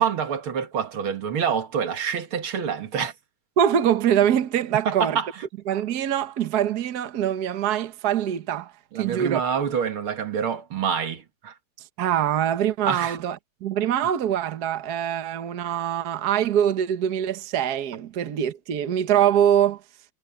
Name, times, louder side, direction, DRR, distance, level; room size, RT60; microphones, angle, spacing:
voice 1, 0.0-3.1 4.9-5.3 8.9-11.5 12.9-13.2, right 7 dB, 90° right, 2.6 m, -26 dB
voice 2, 3.6-5.2 5.7-8.7 9.0-9.4 12.0-19.8, right 9 dB, 55° right, 1.6 m, -23 dB
omnidirectional pair, 2.2 m